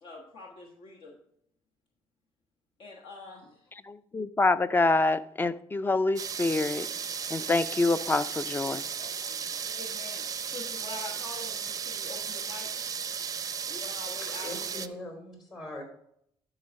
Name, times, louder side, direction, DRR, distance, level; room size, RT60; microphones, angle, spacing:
voice 1, 0.0-1.2 2.8-3.7 9.7-12.7 13.7-14.9, left 2 dB, 70° left, 1.2 m, -44 dB
voice 2, 3.9-6.9 7.3-8.8, left 3 dB, 20° left, 0.4 m, -26 dB
sound 1, 6.2-14.9, right 7 dB, 35° right, 0.5 m, -35 dB
voice 3, 14.2-15.8, left 1 dB, 50° left, 3.7 m, -41 dB
11.0 x 3.9 x 5.2 m
cardioid pair, 90°, 10 cm